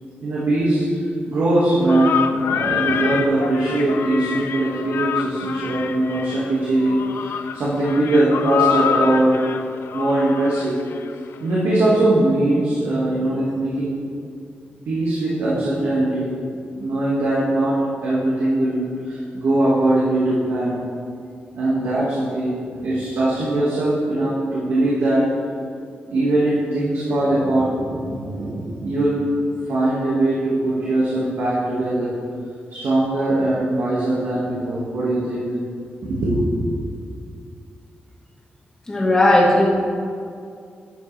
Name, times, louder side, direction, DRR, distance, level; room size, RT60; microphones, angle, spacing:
voice 1, 0.2-0.8 1.3-9.4 9.9-10.8 11.4-14.0 14.9-16.3 16.8-20.8 21.5-22.5 22.8-25.2 26.1-29.2 29.7-32.1 32.7-35.5 36.0-36.7, right 1 dB, 90° right, -8 dB, 1.9 m, -21 dB
sound 1, 1.9-11.3, left 7 dB, 85° left, 0.4 m, -26 dB
voice 2, 38.9-39.7, left 1 dB, 20° left, -5 dB, 1.7 m, -15 dB
11.5 x 7.6 x 3.4 m, 2.3 s
wide cardioid pair, 180°, 4 cm